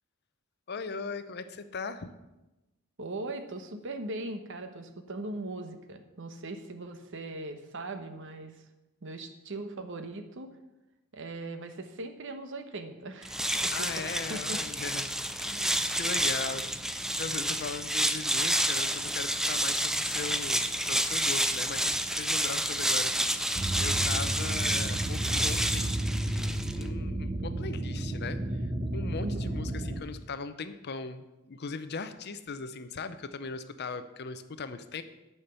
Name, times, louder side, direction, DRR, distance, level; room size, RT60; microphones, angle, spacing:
voice 1, 0.7-2.1 13.7-15.1 15.4-26.0 26.3-26.5 26.8-28.6 28.9-35.0, left 4 dB, 50° left, 11 dB, 0.6 m, -39 dB
voice 2, 3.0-8.6 9.0-10.5 11.1-14.6 29.2-29.5, right 2 dB, 60° right, 8 dB, 0.9 m, -39 dB
sound 1, 13.2-26.9, right 1 dB, ahead, 0.3 m, -29 dB
sound 2, 23.5-30.0, right 1 dB, 25° right, 0.7 m, -32 dB
9.9 x 5.8 x 6.8 m, 1.0 s
head